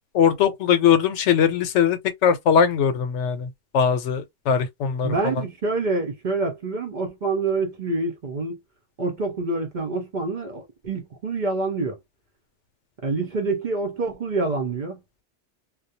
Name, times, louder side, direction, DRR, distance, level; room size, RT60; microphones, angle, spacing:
voice 1, 0.1-3.5 3.7-5.1, left 7 dB, 85° left, 0.9 m, -20 dB
voice 2, 5.0-8.6 9.0-12.0 13.0-15.0, right 3 dB, 50° right, 0.7 m, -26 dB
2.3 x 2.1 x 2.7 m
omnidirectional pair, 1.2 m